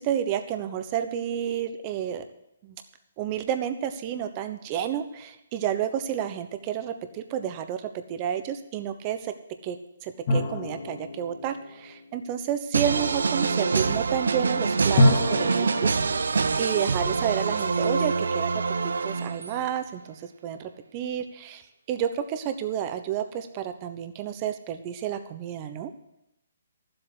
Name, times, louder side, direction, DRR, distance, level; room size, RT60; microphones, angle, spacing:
voice 1, 0.0-2.2 2.6-2.8 3.2-9.3 9.6-9.8 10.0-15.9 16.2-16.3 16.6-18.5 18.8-21.6 21.9-25.9, right 9 dB, 25° right, 8 dB, 0.9 m, -30 dB
sound 1, 10.3-12.6 15.0-17.9, left 1 dB, 40° left, 2.4 m, -27 dB
sound 2, 12.7-19.7, right 4 dB, 85° right, 0.7 m, -25 dB
12.5 x 7.8 x 8.0 m, 0.86 s
hypercardioid pair, 160°, 0 cm